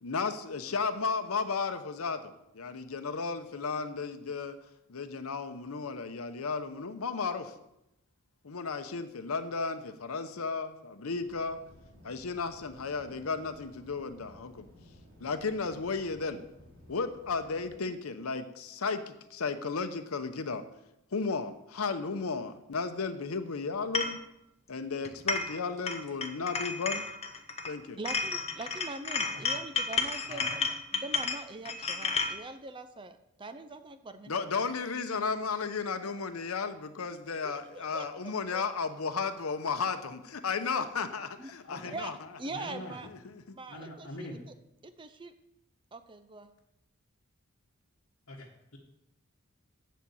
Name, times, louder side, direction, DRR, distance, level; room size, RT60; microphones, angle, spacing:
voice 1, 0.0-4.6 4.9-7.5 8.4-11.6 12.0-14.7 15.2-16.4 16.9-20.6 21.1-24.2 24.7-27.0 27.7-28.0 34.3-41.3 41.7-42.2 43.5-43.6, left 4 dB, 85° left, 9 dB, 0.8 m, -34 dB
sound 1, 11.1-17.7, left 1 dB, 60° right, 3.4 m, -56 dB
sound 2, 23.9-24.2 25.0-25.6 25.9-27.7 28.0-32.3, left 4 dB, 30° left, 0.8 m, -32 dB
voice 2, 28.0-30.7 30.9-34.6 37.4-38.1 38.5-38.6 41.4-41.5 41.9-42.1 42.4-43.1 43.5-44.3 44.8-45.3 45.9-46.5, right 3 dB, 25° right, 10 dB, 0.5 m, -42 dB
voice 3, 30.2-30.6 41.6-42.0 42.5-43.0 43.7-44.4 48.3-48.8, left 1 dB, 65° left, -4 dB, 1.6 m, -43 dB
8.0 x 7.5 x 7.0 m, 0.85 s
head